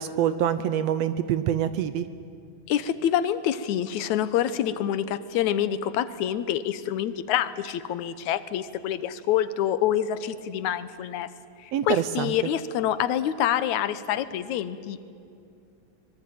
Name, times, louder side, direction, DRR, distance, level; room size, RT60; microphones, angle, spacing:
voice 1, 0.0-2.1 11.7-12.3, right 10 dB, 70° right, 13 dB, 1.7 m, -25 dB
voice 2, 2.7-11.3 11.6-15.0, left 10 dB, 80° left, 14 dB, 2.3 m, -26 dB
24.5 x 21.5 x 9.3 m, 2.5 s
omnidirectional pair, 3.4 m